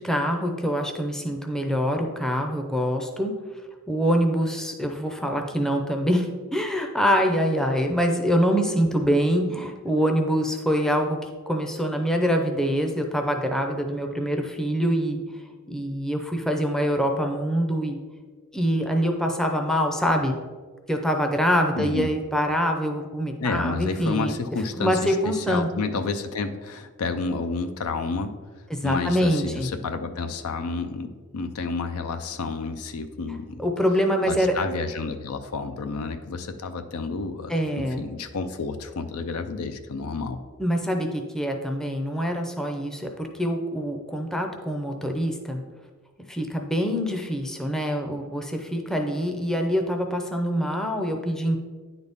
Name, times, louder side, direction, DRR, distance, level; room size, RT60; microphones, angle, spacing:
voice 1, 0.0-3.3 3.9-11.2 11.5-15.2 15.7-18.0 18.5-20.3 20.9-24.4 24.8-25.7 28.7-29.7 33.6-34.5 37.5-38.0 40.6-45.6 46.3-51.6, equal, 5° left, 3 dB, 0.6 m, -25 dB
voice 2, 21.8-22.1 23.4-28.4 28.8-33.7 34.3-40.4, left 4 dB, 75° left, 8 dB, 0.5 m, -30 dB
9.7 x 4.1 x 3.5 m, 1.5 s
head